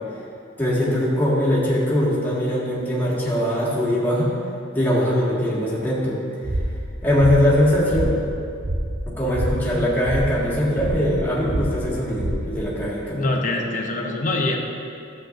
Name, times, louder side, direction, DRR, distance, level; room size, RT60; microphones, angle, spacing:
voice 1, 0.6-4.3 4.7-6.2 7.0-8.2 9.1-13.3, equal, 10° left, -7 dB, 1.7 m, -21 dB
sound 1, 6.4-12.8, right 1 dB, 35° right, 0.7 m, -28 dB
voice 2, 13.1-14.6, left 2 dB, 40° left, 1 dB, 0.8 m, -24 dB
12.5 x 7.8 x 2.5 m, 2.5 s
head